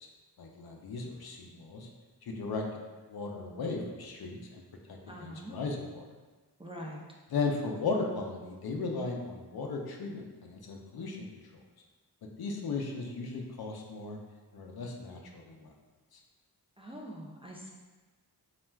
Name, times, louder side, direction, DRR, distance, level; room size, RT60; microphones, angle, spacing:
voice 1, 0.4-1.9 2.2-2.6 3.1-4.6 5.2-6.1 7.3-11.3 12.4-14.2 14.5-15.7 16.1-16.2, left 3 dB, 65° left, 1 dB, 0.5 m, -36 dB
voice 2, 5.1-5.6 6.6-7.0 16.8-17.7, equal, 15° right, -4 dB, 0.3 m, -44 dB
3.1 x 2.4 x 2.2 m, 1.3 s
cardioid pair, 50°, 40 cm